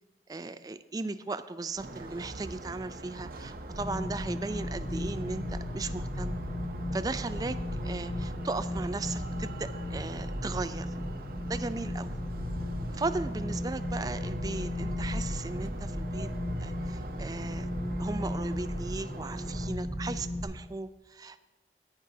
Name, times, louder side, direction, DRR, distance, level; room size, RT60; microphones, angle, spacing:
voice 1, 0.3-6.4 6.9-7.6 7.8-11.0 11.5-12.1 12.9-16.3 16.6-17.7 18.0-21.4, right 3 dB, 20° right, 12 dB, 0.3 m, -37 dB
sound 1, 1.8-19.7, right 2 dB, 55° right, 0.7 m, -44 dB
sound 2, 3.7-20.4, left 1 dB, 65° left, 1.6 m, -35 dB
14.0 x 9.8 x 2.7 m, 1.2 s
head